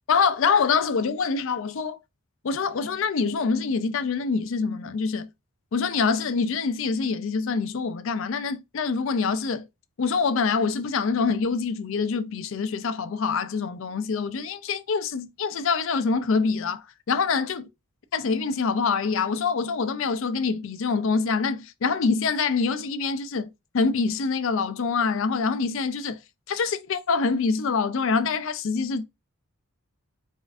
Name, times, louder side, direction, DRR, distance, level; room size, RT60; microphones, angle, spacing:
voice 1, 0.1-2.0 2.4-5.3 5.7-9.7 10.0-17.6 18.1-26.2 26.5-29.0, left 5 dB, 60° left, 0.4 m, -25 dB
4.2 x 2.5 x 2.4 m
head